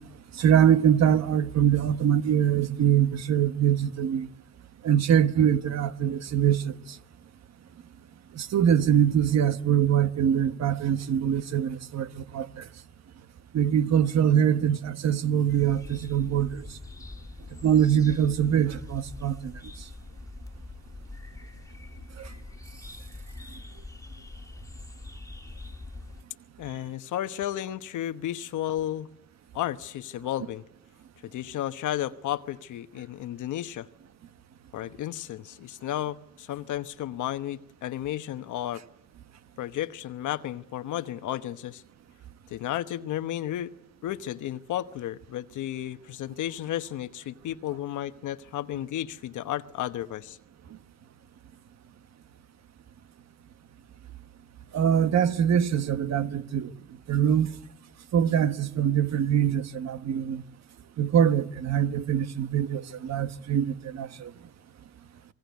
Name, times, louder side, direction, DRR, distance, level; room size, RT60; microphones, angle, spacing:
voice 1, 0.4-4.3 4.8-6.7 8.4-12.6 13.5-16.6 17.6-19.5 22.2-22.3 54.7-56.7 57.1-57.5 58.1-60.4 61.0-64.3, right 9 dB, 60° right, 1.3 m, -23 dB
sound 1, 15.5-26.2, left 2 dB, 10° left, 2.1 m, -43 dB
voice 2, 26.6-29.1 29.5-30.6 31.2-33.9 34.7-38.8 39.6-41.8 42.5-43.7 44.0-50.4, left 12 dB, 80° left, 1.1 m, -33 dB
28.0 x 20.0 x 9.4 m
cardioid pair, 90°, 30 cm